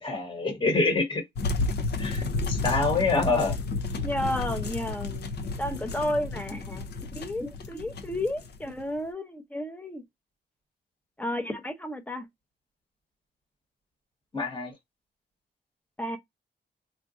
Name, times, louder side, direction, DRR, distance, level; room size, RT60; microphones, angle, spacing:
voice 1, 0.0-1.2 2.0-3.6 14.3-14.7, left 3 dB, 25° left, 1.1 m, -26 dB
sound 1, 1.4-9.0, left 3 dB, 65° left, 0.6 m, -31 dB
voice 2, 4.0-5.3 5.6-10.0 11.2-12.3 16.0-16.2, left 1 dB, 10° left, 0.6 m, -32 dB
3.9 x 2.3 x 2.4 m
wide cardioid pair, 175°, 19 cm